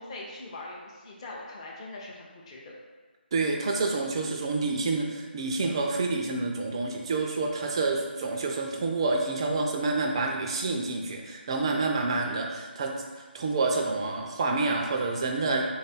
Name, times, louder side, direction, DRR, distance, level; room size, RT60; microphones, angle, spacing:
voice 1, 0.0-2.8, left 2 dB, 30° left, -3 dB, 0.5 m, -42 dB
voice 2, 3.3-12.9 13.3-15.6, right 3 dB, 30° right, 2 dB, 0.4 m, -28 dB
3.5 x 2.4 x 4.0 m, 1.4 s
figure-of-eight pair, 155°, 6 cm